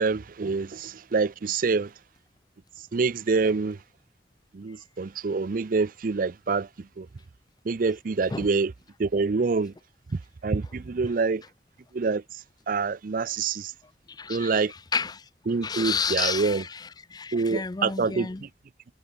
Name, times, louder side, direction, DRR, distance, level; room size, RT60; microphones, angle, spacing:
voice 1, 0.0-1.9 2.9-3.8 4.5-7.1 7.6-8.7 9.0-9.7 10.1-11.4 11.9-13.7 14.3-14.7 15.5-16.6 17.3-18.5, right 4 dB, 50° right, 0.5 m, -26 dB
voice 2, 14.1-14.7 14.9-15.2 15.6-18.5, left 5 dB, 25° left, 0.5 m, -31 dB
head